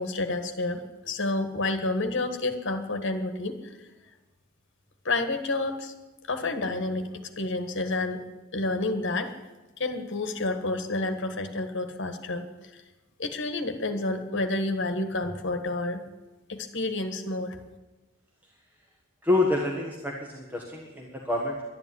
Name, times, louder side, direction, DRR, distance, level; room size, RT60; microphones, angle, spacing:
voice 1, 0.0-3.7 5.0-5.9 6.3-8.2 8.5-9.3 9.8-12.8 13.2-16.0 16.5-17.6, left 2 dB, 60° left, 7 dB, 1.5 m, -29 dB
voice 2, 19.2-21.6, left 2 dB, 10° right, -1 dB, 1.4 m, -27 dB
11.5 x 10.5 x 9.7 m, 1.1 s
head